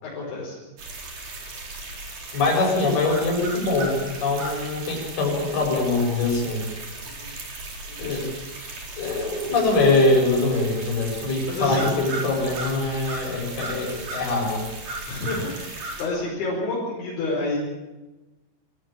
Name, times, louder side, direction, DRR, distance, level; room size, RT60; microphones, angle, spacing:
voice 1, 0.0-0.6 7.1-7.3 7.9-8.3 11.5-11.9 15.1-17.6, left 2 dB, 70° left, -5 dB, 7.4 m, -29 dB
sound 1, 0.8-16.1, right 2 dB, 40° right, 5.2 m, -36 dB
voice 2, 2.3-6.6 8.0-8.2 9.0-14.6, left 2 dB, 50° left, -1 dB, 8.5 m, -23 dB
24.5 x 15.0 x 8.9 m, 1.1 s
omnidirectional pair, 5.7 m